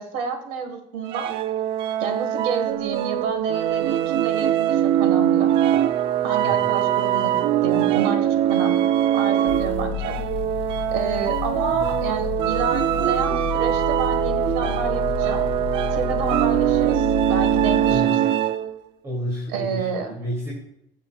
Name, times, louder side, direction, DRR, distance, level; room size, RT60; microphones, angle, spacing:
voice 1, 0.0-1.3 2.0-5.5 6.2-8.8 9.1-10.2 10.9-15.5 15.9-18.2 19.5-20.1, right 5 dB, 80° right, 7 dB, 1.5 m, -29 dB
sound 1, 1.1-18.8, right 11 dB, 45° right, 0.4 m, -22 dB
sound 2, 9.5-18.0, left 14 dB, 50° left, 0.4 m, -31 dB
voice 2, 19.0-20.5, equal, 25° right, -4 dB, 2.6 m, -30 dB
15.5 x 7.2 x 2.4 m, 0.81 s
cardioid pair, 150°, 12 cm